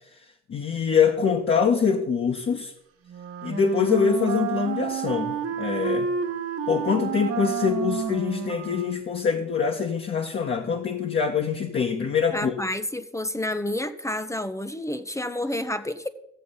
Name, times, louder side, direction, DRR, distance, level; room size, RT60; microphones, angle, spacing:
voice 1, 0.5-2.7 3.4-6.1 6.7-12.5, left 6 dB, 35° left, 0 dB, 1.5 m, -24 dB
Wind instrument woodwind instrument, 3.0-9.1, right 6 dB, 40° right, 1.6 m, -30 dB
voice 2, 12.3-16.1, left 1 dB, 10° left, 11 dB, 0.9 m, -29 dB
14.0 x 7.6 x 5.6 m, 0.79 s
figure-of-eight pair, 55°, 33 cm